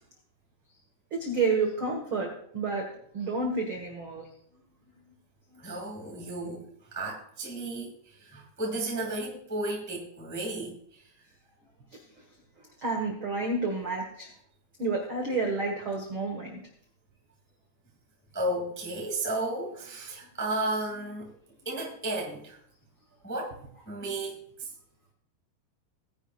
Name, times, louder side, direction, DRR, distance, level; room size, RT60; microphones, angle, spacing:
voice 1, 1.1-2.9 3.1-4.3 12.8-14.3 14.8-16.6, right 3 dB, 65° right, 1 dB, 1.2 m, -30 dB
voice 2, 5.6-11.0 18.3-21.3 21.6-22.6 23.2-23.5 23.9-24.7, right 2 dB, 5° left, -1 dB, 1.0 m, -34 dB
18.5 x 10.5 x 2.5 m, 0.66 s
omnidirectional pair, 5.2 m